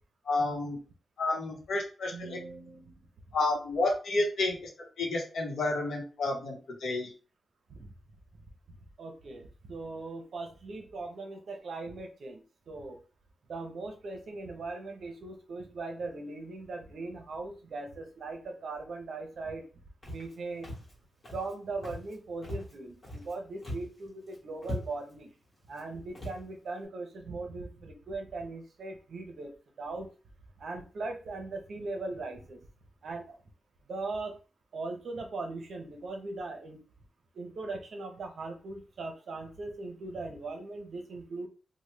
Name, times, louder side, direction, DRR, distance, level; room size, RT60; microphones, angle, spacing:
voice 1, 0.3-0.8 1.2-2.4 3.3-4.6 5.0-7.1, left 2 dB, 65° left, 1 dB, 0.9 m, -30 dB
voice 2, 2.1-2.9 7.7-7.9 9.0-13.0 13.5-19.6 20.1-20.7 21.3-25.3 25.7-29.5 29.8-30.1 30.6-32.6 33.0-33.4 33.9-34.4 34.7-36.8 37.3-41.5, right 3 dB, 55° right, 3 dB, 0.7 m, -39 dB
Walk footsteps, 20.0-20.3 20.6-20.9 21.2-21.5 21.8-22.2 22.4-23.3 23.6-24.0 24.3-24.4 24.6-25.2 25.7-25.8 26.1-26.4, equal, 30° left, 1.2 m, -40 dB
3.1 x 2.1 x 3.2 m, 0.35 s
wide cardioid pair, 175°, 0 cm